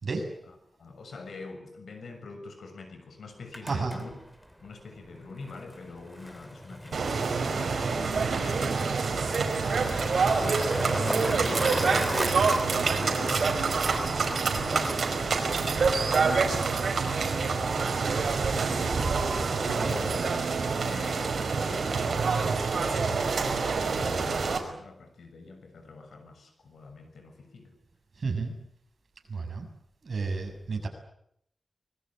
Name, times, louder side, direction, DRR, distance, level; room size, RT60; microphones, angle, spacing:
voice 1, 0.5-4.1 4.6-8.8 10.0-19.2 19.6-27.7, left 3 dB, 90° left, 7 dB, 6.6 m, -45 dB
Skateboard, 3.3-19.0, equal, ahead, 2.8 m, -38 dB
voice 2, 3.6-4.0 28.2-28.5 29.3-29.7 30.0-30.9, right 4 dB, 55° right, 4 dB, 6.9 m, -31 dB
sound 1, 6.9-24.6, right 4 dB, 80° right, 5.0 m, -27 dB
25.0 x 22.0 x 9.0 m, 0.73 s
wide cardioid pair, 135°, 0 cm